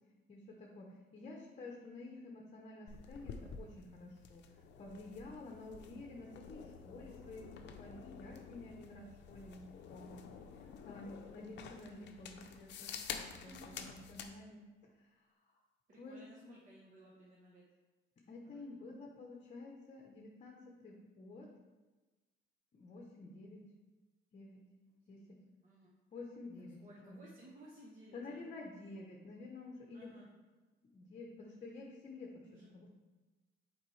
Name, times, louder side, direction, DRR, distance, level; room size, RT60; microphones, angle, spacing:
voice 1, 0.3-4.4 4.7-9.6 9.9-10.2 10.5-14.6 15.0-15.6 16.0-16.5 18.3-21.5 22.7-23.7 24.3-24.6 25.1-25.4 26.1-27.2 28.1-30.1 30.9-32.9, left 2 dB, 35° left, 0 dB, 0.8 m, -51 dB
sound 1, 2.9-14.3, left 6 dB, 60° left, 0.6 m, -50 dB
voice 2, 13.5-13.9 15.9-17.6 18.5-19.0 25.1-25.4 25.6-25.9 26.8-28.6 29.9-30.3 32.4-32.7, right 2 dB, 40° right, -4 dB, 0.9 m, -58 dB
7.2 x 4.6 x 3.2 m, 1.2 s
cardioid pair, 135°, 20 cm